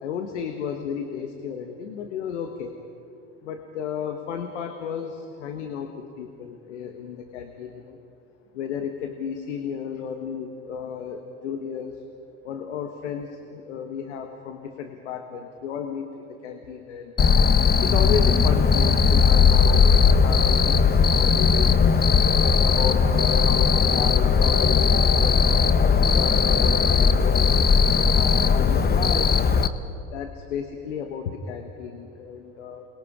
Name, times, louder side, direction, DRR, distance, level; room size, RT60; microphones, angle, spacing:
voice 1, 0.0-2.7 3.4-8.0 8.5-12.0 12.4-17.1 17.8-22.1 22.6-27.5 28.2-29.5 30.1-32.9, left 7 dB, 85° left, 5 dB, 1.4 m, -33 dB
Cricket, 17.2-29.7, left 5 dB, 30° left, 1.0 m, -18 dB
28.0 x 21.0 x 5.0 m, 2.6 s
hypercardioid pair, 70°, 35 cm